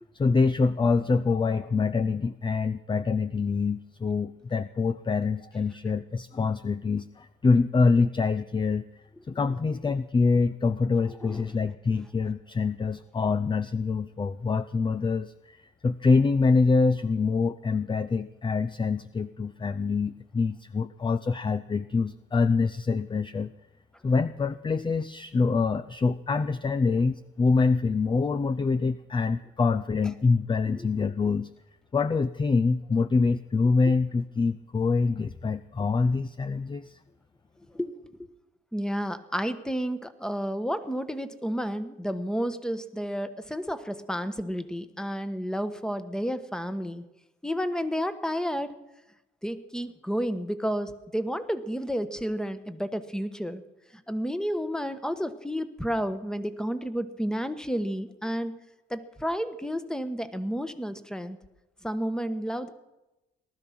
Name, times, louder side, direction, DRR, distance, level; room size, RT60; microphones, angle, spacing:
voice 1, 0.1-8.9 9.3-23.5 24.0-31.5 31.9-37.0, left 4 dB, 25° left, 13 dB, 0.6 m, -25 dB
voice 2, 37.7-38.1 38.7-47.1 47.4-48.7 49.4-53.6 54.1-58.5 58.9-61.4 61.8-62.7, equal, 5° left, 11 dB, 1.3 m, -31 dB
19.0 x 12.5 x 6.0 m, 0.98 s
cardioid pair, 90°, 20 cm